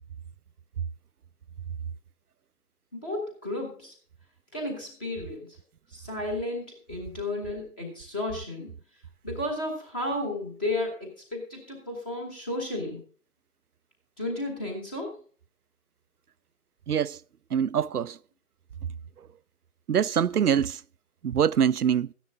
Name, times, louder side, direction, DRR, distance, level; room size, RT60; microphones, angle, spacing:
voice 1, 2.9-3.9 4.5-5.6 5.9-8.7 9.2-13.0 14.2-15.2, left 1 dB, 5° left, 0.8 m, -33 dB
voice 2, 16.9-17.2 17.5-18.2 19.9-20.8 21.2-22.1, right 8 dB, 80° right, 0.5 m, -24 dB
13.5 x 10.0 x 3.7 m
figure-of-eight pair, 145°, 44 cm